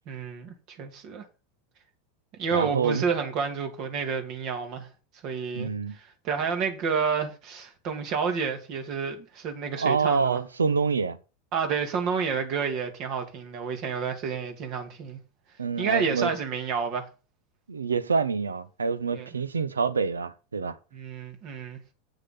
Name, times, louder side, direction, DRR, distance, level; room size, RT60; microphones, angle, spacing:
voice 1, 0.1-1.3 2.4-4.9 5.2-10.4 11.5-15.2 15.8-17.1 19.1-19.3 20.9-21.8, right 6 dB, 50° right, 2.5 m, -30 dB
voice 2, 2.5-3.1 5.5-6.0 9.7-11.2 15.6-16.3 17.7-20.8, right 5 dB, 85° right, 0.8 m, -26 dB
8.3 x 6.6 x 5.5 m
hypercardioid pair, 85°, 0 cm